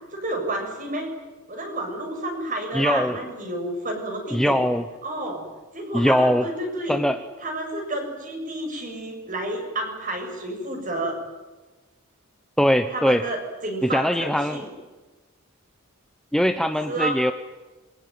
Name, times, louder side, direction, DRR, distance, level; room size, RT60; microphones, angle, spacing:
voice 1, 0.1-1.1 1.5-4.6 5.0-5.5 5.7-7.0 7.4-11.2 12.9-14.7 16.9-17.2, right 1 dB, 35° right, 3 dB, 7.0 m, -30 dB
voice 2, 2.7-3.1 4.3-4.8 5.9-6.4 6.9-7.2 12.6-13.2 13.8-14.6 16.3-17.3, equal, ahead, 8 dB, 0.8 m, -21 dB
26.5 x 24.0 x 9.4 m, 1.2 s
head